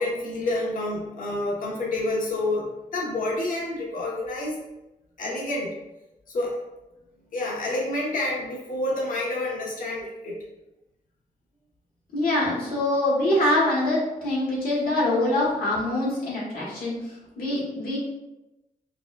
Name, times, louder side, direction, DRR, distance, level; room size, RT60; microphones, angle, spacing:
voice 1, 0.0-4.6 5.2-5.7 6.3-6.6 7.3-10.4, left 2 dB, 65° left, -4 dB, 1.0 m, -28 dB
voice 2, 12.1-16.9 17.4-18.0, left 1 dB, 85° left, -5 dB, 1.3 m, -24 dB
5.1 x 2.3 x 2.3 m, 0.97 s
cardioid pair, 95°, 15 cm